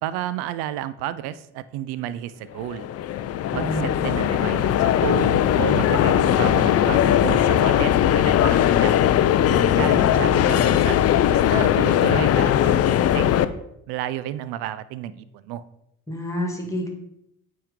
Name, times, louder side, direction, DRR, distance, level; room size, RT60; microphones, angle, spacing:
voice 1, 0.0-2.9 3.5-9.0 9.8-13.3 13.9-15.6, right 12 dB, 70° right, 15 dB, 0.5 m, -31 dB
sound 1, 2.6-13.4, left 10 dB, 40° left, 0.4 m, -19 dB
voice 2, 3.5-3.9 9.4-9.8 16.1-16.9, equal, 5° left, 1 dB, 1.9 m, -29 dB
8.7 x 3.1 x 3.6 m, 0.77 s
hypercardioid pair, 60°, 41 cm